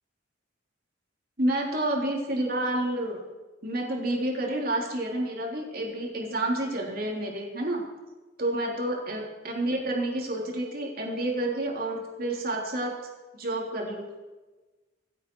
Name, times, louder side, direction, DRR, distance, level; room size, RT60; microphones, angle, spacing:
voice 1, 1.4-3.2 3.6-7.8 8.4-13.0 13.3-14.1, right 1 dB, 50° right, -1 dB, 3.5 m, -29 dB
26.0 x 8.9 x 4.7 m, 1.2 s
head